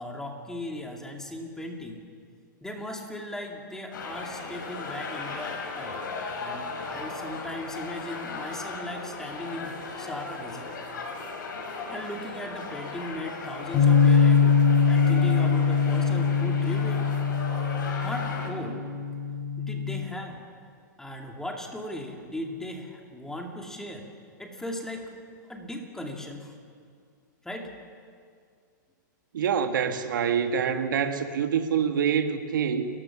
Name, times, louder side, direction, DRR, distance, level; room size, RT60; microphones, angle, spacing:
voice 1, 0.0-2.0 2.6-6.1 6.4-10.8 11.9-14.6 14.9-17.0 18.0-18.9 19.6-20.4 21.0-24.1 24.4-25.1 25.5-26.5 27.4-27.7, left 1 dB, 5° left, 1 dB, 2.5 m, -37 dB
sound 1, 3.9-18.5, left 4 dB, 75° left, 5.0 m, -37 dB
Bass guitar, 13.7-20.0, left 6 dB, 35° left, 6.0 m, -22 dB
voice 2, 29.3-32.9, right 7 dB, 80° right, 7 dB, 1.5 m, -26 dB
29.5 x 15.0 x 6.1 m, 2.2 s
hypercardioid pair, 140°, 10 cm